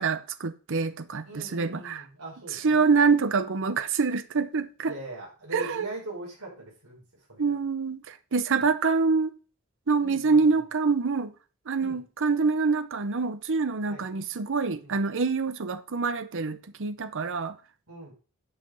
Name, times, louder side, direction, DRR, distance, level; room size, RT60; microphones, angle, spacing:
voice 1, 0.0-2.0 2.5-4.9 5.5-5.9 7.4-9.3 9.9-11.3 11.7-17.6, right 4 dB, 60° right, 0.7 m, -26 dB
voice 2, 1.2-2.9 4.9-7.0 7.3-7.6 8.5-8.7 10.0-10.4 11.8-12.0 13.9-14.0 14.8-15.0 17.9-18.1, right 2 dB, 75° right, 5.8 m, -41 dB
9.8 x 5.7 x 5.4 m
head